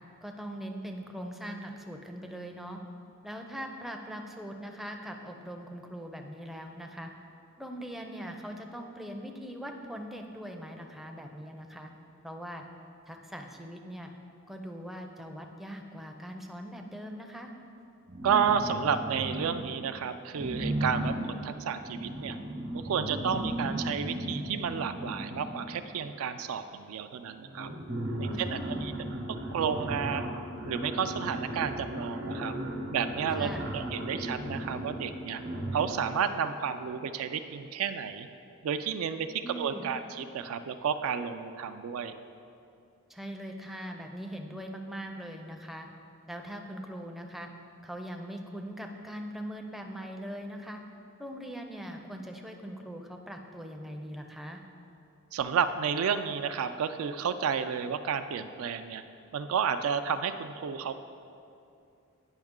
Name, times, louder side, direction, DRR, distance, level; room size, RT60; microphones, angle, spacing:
voice 1, 0.2-2.8 3.2-7.1 7.6-11.9 12.2-12.6 13.1-14.1 14.5-17.5 28.3-28.9 33.4-33.7 39.4-39.9 43.1-45.9 46.3-47.5 47.8-50.8 51.2-54.6, equal, ahead, 3 dB, 0.4 m, -41 dB
sound 1, 18.1-19.9 20.3-26.0 26.9-27.0 27.3-36.2, right 1 dB, 55° right, 1.0 m, -36 dB
voice 2, 18.2-22.4 22.7-27.7 28.2-28.9 29.3-30.3 30.6-32.5 32.9-35.4 35.7-38.3 38.6-42.1 55.3-59.0 59.3-61.0, right 7 dB, 75° right, 10 dB, 0.3 m, -31 dB
9.0 x 5.4 x 3.6 m, 2.6 s
head